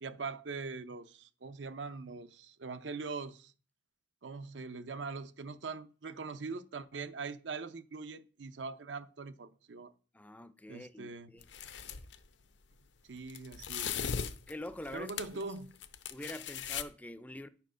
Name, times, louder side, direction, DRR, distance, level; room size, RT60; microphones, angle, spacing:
voice 1, 0.0-3.5 4.2-9.9 10.7-11.3 13.1-14.1 14.9-15.7, right 4 dB, 75° right, 0.7 m, -42 dB
voice 2, 10.1-11.5 14.5-15.4 16.1-17.5, left 1 dB, 10° left, 0.4 m, -45 dB
sound 1, 11.4-12.2 13.3-15.4 15.8-16.8, left 7 dB, 75° left, 0.7 m, -38 dB
10.0 x 4.6 x 6.2 m
head